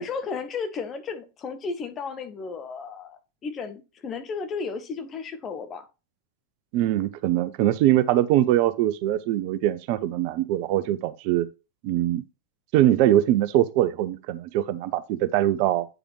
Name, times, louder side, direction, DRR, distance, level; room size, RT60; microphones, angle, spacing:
voice 1, 0.0-5.8, left 5 dB, 25° left, 1.1 m, -34 dB
voice 2, 6.7-11.5 11.8-12.2 12.7-15.9, right 13 dB, 45° right, 0.5 m, -22 dB
8.6 x 4.9 x 3.2 m
figure-of-eight pair, 90°, 0 cm